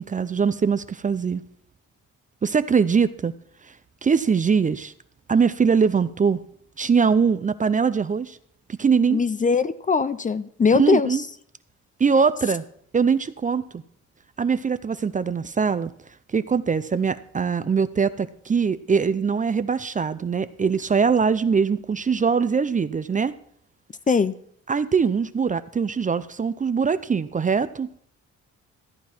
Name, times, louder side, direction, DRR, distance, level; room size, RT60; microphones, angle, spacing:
voice 1, 0.0-1.4 2.4-3.3 4.0-4.9 5.3-6.4 6.8-8.4 8.7-9.2 10.8-11.2 12.0-12.6 12.9-13.8 14.4-15.9 16.3-23.4 24.7-27.9, right 6 dB, 25° right, 14 dB, 0.5 m, -22 dB
voice 2, 9.1-11.2 24.1-24.4, left 5 dB, 25° left, 15 dB, 0.5 m, -21 dB
14.0 x 9.3 x 4.4 m, 0.64 s
cardioid pair, 90°, 30 cm